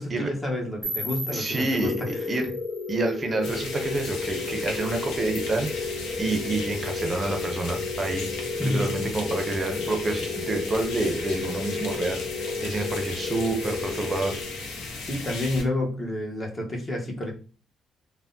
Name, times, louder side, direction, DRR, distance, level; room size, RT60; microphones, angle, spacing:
voice 1, 0.0-2.2 8.6-8.9 15.0-17.3, left 1 dB, 25° left, 0 dB, 0.9 m, -29 dB
sound 1, 0.8-3.8, right 1 dB, 5° right, 1.3 m, -36 dB
voice 2, 1.3-2.5 2.9-8.3 8.6-14.4, right 2 dB, 35° right, 4 dB, 0.5 m, -28 dB
sound 2, 1.8-15.0, left 4 dB, 45° left, 0.4 m, -33 dB
sound 3, 3.4-15.6, left 3 dB, 85° left, 0.6 m, -36 dB
3.3 x 2.0 x 2.6 m, 0.38 s
cardioid pair, 90°, 0 cm